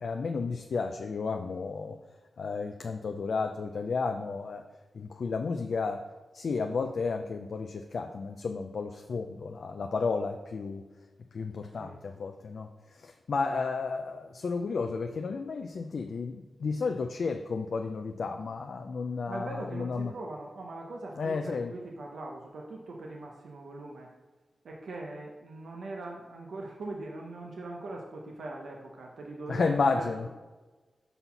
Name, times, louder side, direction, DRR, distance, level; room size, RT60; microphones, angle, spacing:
voice 1, 0.0-2.0 2.4-4.6 4.9-6.0 6.3-10.8 11.3-12.7 12.9-20.1 21.2-21.7 29.5-30.3, left 4 dB, 75° left, 4 dB, 0.4 m, -32 dB
voice 2, 19.3-24.1 24.6-30.3, right 2 dB, 80° right, -1 dB, 0.8 m, -41 dB
5.6 x 4.1 x 5.7 m, 1.3 s
cardioid pair, 50°, 0 cm